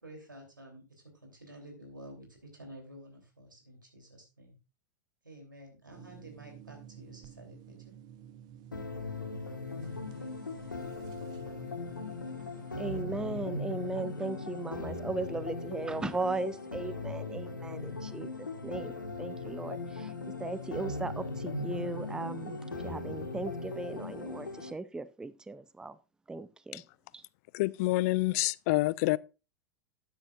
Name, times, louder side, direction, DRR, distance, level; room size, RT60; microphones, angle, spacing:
voice 1, 0.0-4.6 5.2-7.9, right 1 dB, 90° right, 3.3 m, -51 dB
sound 1, 5.9-13.0, right 9 dB, 40° right, 1.0 m, -53 dB
sound 2, 8.7-24.7, left 3 dB, 85° left, 1.6 m, -39 dB
voice 2, 12.8-18.9 19.2-20.1 20.4-26.0 26.3-26.8 27.1-27.2, right 3 dB, 5° right, 0.5 m, -37 dB
voice 3, 27.5-29.2, left 20 dB, 50° left, 0.4 m, -27 dB
12.5 x 9.3 x 2.5 m
figure-of-eight pair, 90°, 10 cm